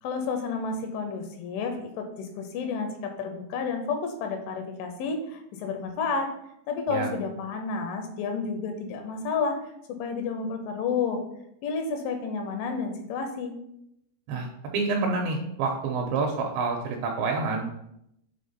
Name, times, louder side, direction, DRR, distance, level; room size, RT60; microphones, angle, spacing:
voice 1, 0.0-6.3 6.7-9.6 10.0-11.2 11.6-13.5, left 5 dB, 80° left, 5 dB, 3.1 m, -30 dB
voice 2, 14.7-17.6, right 4 dB, 80° right, 1 dB, 2.7 m, -27 dB
8.6 x 3.5 x 5.5 m, 0.79 s
omnidirectional pair, 5.9 m